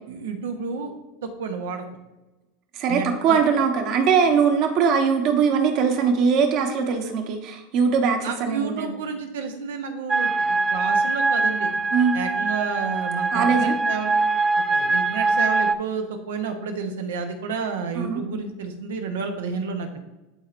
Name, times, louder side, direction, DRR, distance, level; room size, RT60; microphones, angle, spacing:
voice 1, 0.1-0.9 1.2-1.8 2.9-3.4 8.2-11.7 12.1-14.1 14.7-20.0, right 5 dB, 90° right, 6 dB, 1.0 m, -30 dB
voice 2, 2.7-9.0 11.9-12.2 13.3-13.7 17.9-18.2, right 6 dB, 55° right, 4 dB, 1.2 m, -21 dB
sound 1, 10.1-15.7, right 3 dB, 15° right, 0.3 m, -23 dB
11.0 x 4.5 x 2.6 m, 1.0 s
supercardioid pair, 120°, 0 cm